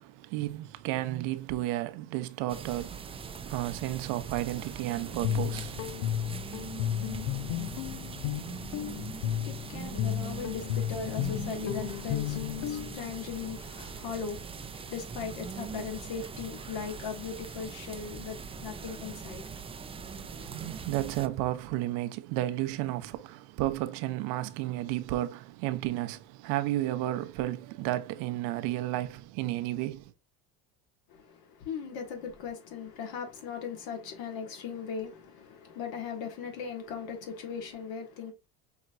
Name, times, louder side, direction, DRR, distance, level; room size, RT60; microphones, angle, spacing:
voice 1, 0.0-6.1 20.2-30.1, right 15 dB, 70° right, 0.7 m, -33 dB
sound 1, 2.5-21.3, right 6 dB, 15° right, 0.4 m, -41 dB
Guitar, 5.0-13.0, left 12 dB, 85° left, 0.5 m, -33 dB
voice 2, 9.2-20.5 31.1-38.3, left 6 dB, 65° left, 1.6 m, -39 dB
5.7 x 2.9 x 2.5 m
supercardioid pair, 105°, 40 cm